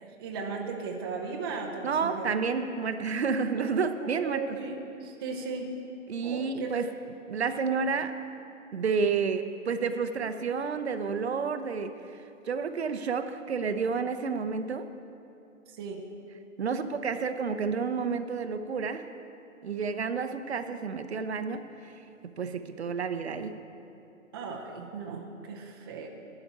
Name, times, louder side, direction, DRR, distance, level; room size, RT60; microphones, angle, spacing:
voice 1, 0.0-2.3 3.5-3.6 4.2-5.7 6.2-6.7 15.7-16.1 24.3-26.1, right 4 dB, 20° right, 1 dB, 0.6 m, -37 dB
voice 2, 1.8-4.4 6.1-6.9 7.3-8.2 8.7-12.0 12.5-14.9 16.6-19.1 19.6-21.9 22.4-23.6, right 5 dB, 50° right, 9 dB, 0.7 m, -30 dB
11.0 x 5.9 x 9.1 m, 2.7 s
figure-of-eight pair, 130°, 40 cm